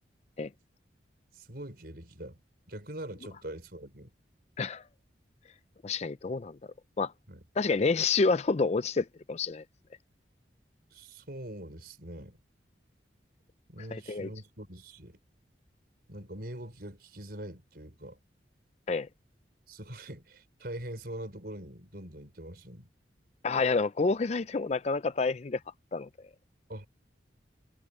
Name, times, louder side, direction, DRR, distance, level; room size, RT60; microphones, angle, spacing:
voice 1, 1.3-2.4 2.7-4.1 7.3-7.4 10.9-12.4 13.7-15.2 16.1-18.2 19.7-22.9 26.7-26.9, right 1 dB, 55° right, 5.1 m, -43 dB
voice 2, 5.8-6.6 7.0-7.1 7.6-9.6 13.9-14.3 18.9-19.1 23.4-25.6 25.9-26.1, left 4 dB, 35° left, 0.4 m, -28 dB
head